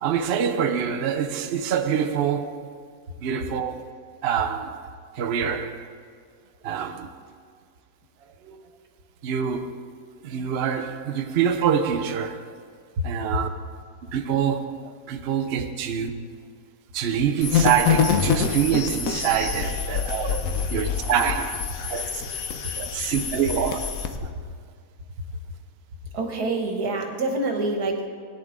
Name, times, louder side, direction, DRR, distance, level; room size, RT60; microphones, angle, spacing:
voice 1, 0.0-2.8 3.2-3.9 4.2-4.8 5.2-5.9 6.6-7.1 8.4-8.6 9.2-9.8 10.2-12.5 13.0-13.5 14.1-16.1 16.9-20.4 20.7-21.6 21.9-22.0 22.8-23.9, right 8 dB, 55° right, 0.8 m, -25 dB
sound 1, 17.4-24.2, left 7 dB, 65° left, 1.2 m, -26 dB
voice 2, 26.1-28.1, right 2 dB, 85° right, 1.9 m, -26 dB
18.0 x 10.0 x 3.6 m
omnidirectional pair, 1.6 m